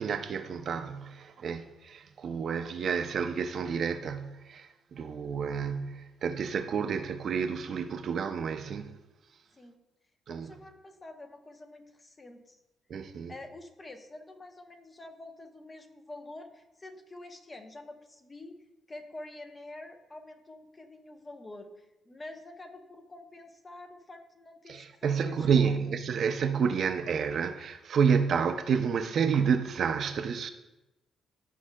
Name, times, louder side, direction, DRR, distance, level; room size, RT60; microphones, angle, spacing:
voice 1, 0.0-9.0 10.3-10.5 12.9-13.3 24.7-30.5, right 6 dB, 60° right, 0.5 m, -29 dB
voice 2, 10.3-12.6 13.3-18.6 18.9-25.9, left 2 dB, 25° left, 0.9 m, -47 dB
12.5 x 4.7 x 2.3 m
cardioid pair, 90°, 0 cm